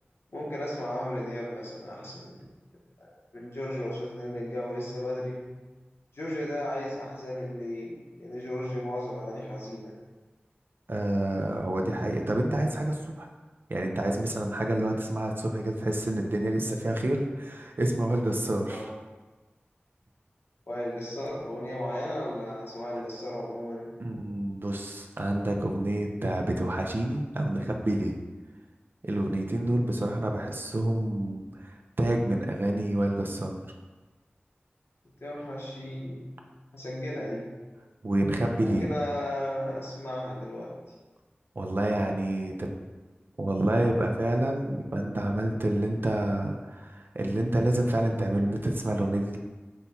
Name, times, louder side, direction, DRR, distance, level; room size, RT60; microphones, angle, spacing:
voice 1, 0.3-2.4 3.0-5.4 6.1-9.9 18.7-18.9 20.7-23.9 35.0-36.2 36.7-37.5 38.6-40.7, left 1 dB, 85° left, -5 dB, 1.1 m, -35 dB
voice 2, 10.9-13.3 13.7-18.9 24.0-28.2 29.0-33.6 38.0-39.0 41.6-42.7 43.4-49.4, right 1 dB, 60° right, 1 dB, 0.5 m, -28 dB
5.5 x 2.3 x 4.2 m, 1.3 s
wide cardioid pair, 50°, 4 cm